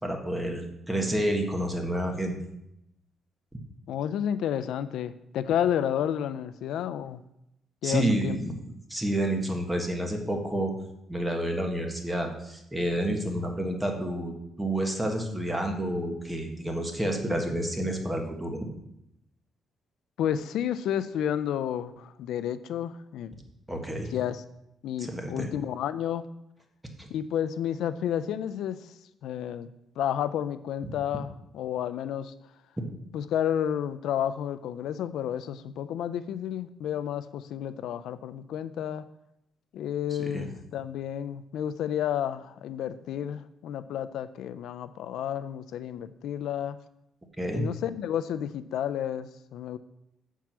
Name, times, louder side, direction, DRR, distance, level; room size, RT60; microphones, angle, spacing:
voice 1, 0.0-2.4 7.8-8.6 8.9-10.7 11.1-18.6 23.7-24.1 25.1-25.5 27.0-27.1 40.2-40.5 47.4-47.7, right 1 dB, 10° right, 3 dB, 1.4 m, -29 dB
voice 2, 3.9-7.2 7.8-8.4 20.2-23.3 24.1-24.4 24.8-26.3 27.1-28.9 29.2-29.7 30.0-32.3 33.1-39.0 39.7-46.8 47.5-49.8, left 10 dB, 80° left, 13 dB, 0.3 m, -31 dB
7.4 x 4.6 x 5.9 m, 0.82 s
cardioid pair, 90°, 0 cm